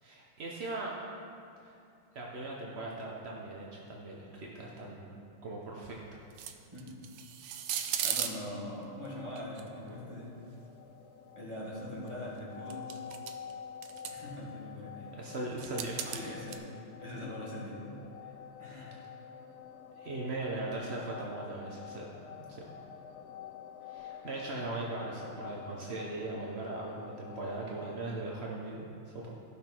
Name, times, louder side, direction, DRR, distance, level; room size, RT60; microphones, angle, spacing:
voice 1, 0.0-0.9 1.6-1.8 2.1-5.2 5.4-6.0 15.2-16.4 20.0-22.1 22.5-22.6 23.9-29.3, right 2 dB, 60° right, -3 dB, 0.6 m, -39 dB
sound 1, 6.3-8.3 9.4-9.6 12.1-12.4 12.7-13.5 13.8-14.1 15.5-16.6, right 9 dB, 75° right, 1.5 m, -36 dB
voice 2, 8.0-10.3 11.3-12.9 14.1-15.1 16.1-16.7 17.0-18.0 18.6-19.0, left 1 dB, 15° right, -8 dB, 2.3 m, -42 dB
sound 2, 8.6-28.0, left 8 dB, 80° left, 0.8 m, -49 dB
14.5 x 6.0 x 4.5 m, 2.6 s
omnidirectional pair, 2.3 m